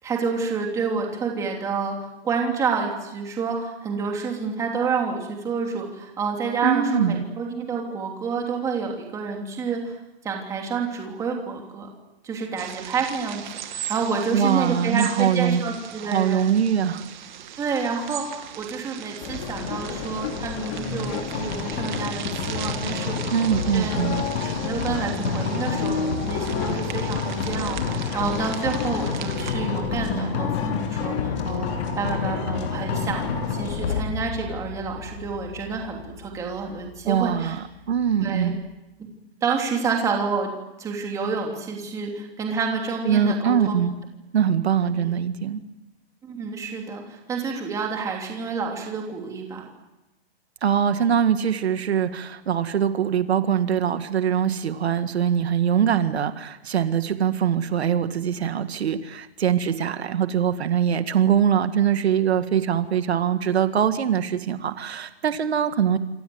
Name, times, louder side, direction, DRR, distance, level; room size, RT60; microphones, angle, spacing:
voice 1, 0.0-2.0 2.2-10.0 10.2-11.9 12.2-16.5 17.6-24.0 24.4-31.7 32.0-37.6 38.2-38.5 39.4-40.5 40.8-43.7 44.8-45.1 46.2-49.7, right 5 dB, 10° right, 1 dB, 3.1 m, -29 dB
voice 2, 6.6-7.2 14.3-15.6 16.1-17.0 23.3-24.2 37.1-38.6 43.1-44.0 44.3-45.6 50.6-66.0, right 8 dB, 70° right, 9 dB, 2.0 m, -22 dB
sound 1, 12.6-29.5, right 10 dB, 45° right, 2.4 m, -39 dB
sound 2, 19.2-34.0, left 5 dB, 25° left, 3.0 m, -32 dB
sound 3, 21.3-38.6, left 5 dB, 70° left, 7.9 m, -31 dB
28.5 x 24.5 x 7.9 m, 0.98 s
hypercardioid pair, 175°, 33 cm